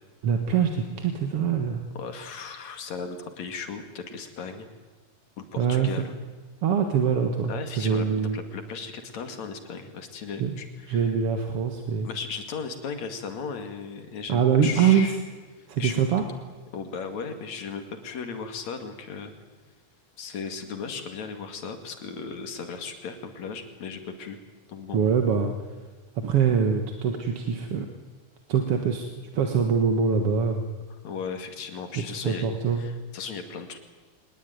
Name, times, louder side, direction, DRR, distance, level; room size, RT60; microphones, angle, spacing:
voice 1, 0.2-1.8 5.6-5.9 6.6-7.5 7.8-8.4 10.4-10.6 10.9-12.1 14.3-15.1 15.7-16.2 24.9-25.5 26.2-27.9 28.5-30.6 32.0-32.8, right 7 dB, 55° right, 5 dB, 2.2 m, -24 dB
voice 2, 1.9-4.7 5.4-6.1 7.5-11.1 12.0-15.2 15.6-16.0 16.7-19.3 20.2-24.4 24.7-25.0 30.9-33.8, left 5 dB, 60° left, 7 dB, 3.4 m, -36 dB
23.5 x 20.5 x 9.4 m, 1.4 s
omnidirectional pair, 3.7 m